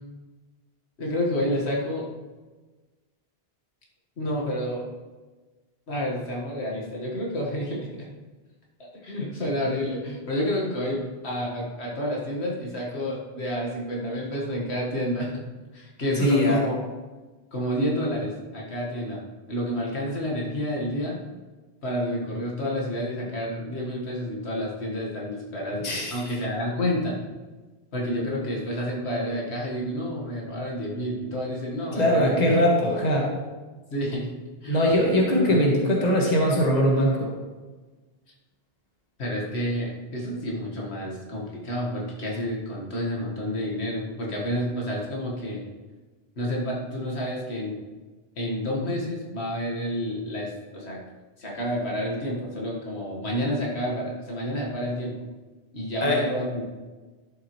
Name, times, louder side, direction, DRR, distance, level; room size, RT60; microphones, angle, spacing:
voice 1, 1.0-2.1 4.2-4.9 5.9-8.1 9.0-15.3 15.7-16.8 17.5-19.2 19.5-21.2 21.8-27.2 27.9-32.5 33.9-34.3 34.6-34.9 35.5-35.6 39.2-45.6 46.4-47.8 48.4-51.0 51.4-55.1 55.7-56.6, equal, 80° left, -3 dB, 2.0 m, -29 dB
voice 2, 16.2-16.6 25.8-26.1 32.0-33.3 34.7-37.3 56.0-56.2, equal, 40° left, -2 dB, 1.7 m, -21 dB
11.5 x 7.6 x 3.2 m, 1.3 s
omnidirectional pair, 1.1 m